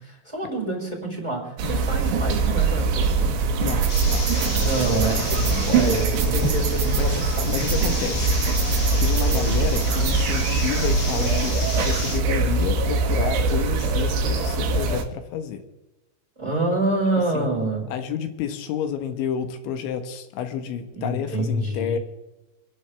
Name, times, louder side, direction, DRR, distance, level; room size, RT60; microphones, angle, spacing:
voice 1, 0.0-3.3 4.6-7.5 16.4-17.9 20.9-22.0, right 2 dB, 5° right, -4 dB, 5.3 m, -27 dB
sound 1, 1.6-15.0, right 3 dB, 90° right, 4.1 m, -23 dB
voice 2, 3.6-4.3 4.9-6.0 6.3-6.5 7.0-7.2 7.5-8.5 9.0-15.6 17.3-17.5 17.9-22.0, left 8 dB, 85° left, 8 dB, 3.6 m, -30 dB
sound 2, 3.7-10.2, right 5 dB, 70° right, 1.5 m, -29 dB
sound 3, 3.9-12.2, left 2 dB, 30° left, 1.6 m, -32 dB
28.0 x 11.0 x 3.4 m, 1.0 s
omnidirectional pair, 5.2 m